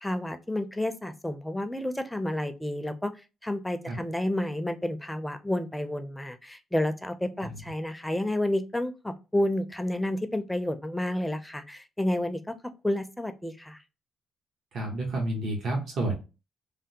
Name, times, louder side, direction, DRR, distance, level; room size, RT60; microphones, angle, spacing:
voice 1, 0.0-3.1 3.4-13.8, left 1 dB, 5° left, 0.4 m, -30 dB
voice 2, 14.7-16.1, right 2 dB, 60° right, 1.0 m, -29 dB
3.3 x 2.1 x 2.8 m
cardioid pair, 90°, 0 cm